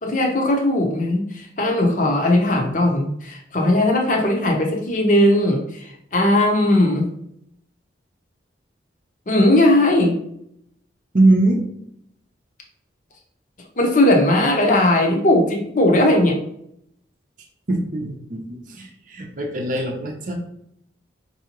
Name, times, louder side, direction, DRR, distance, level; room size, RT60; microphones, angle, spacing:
voice 1, 0.0-7.1 9.3-10.2 13.8-16.4, left 1 dB, 40° left, 1 dB, 0.8 m, -18 dB
voice 2, 11.1-11.6 17.7-20.3, right 2 dB, 45° right, 2 dB, 0.6 m, -21 dB
4.7 x 2.7 x 2.9 m, 0.73 s
head